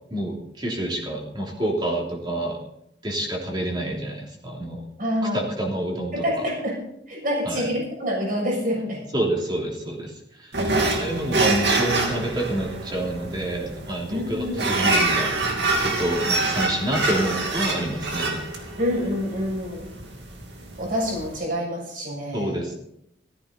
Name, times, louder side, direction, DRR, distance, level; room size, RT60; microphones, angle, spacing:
voice 1, 0.1-2.6 3.0-4.8 5.3-6.2 7.4-7.7 9.1-10.1 10.4-10.6 10.9-18.4 22.3-22.7, right 1 dB, 25° right, -1 dB, 3.1 m, -28 dB
voice 2, 5.0-5.4 6.1-6.8 7.1-9.0 10.6-11.0 14.1-14.6 18.8-19.9 20.8-22.6, equal, 50° right, -2 dB, 6.9 m, -27 dB
sound 1, 10.5-21.4, right 2 dB, 70° right, 2.4 m, -26 dB
15.5 x 14.0 x 4.2 m, 0.76 s
head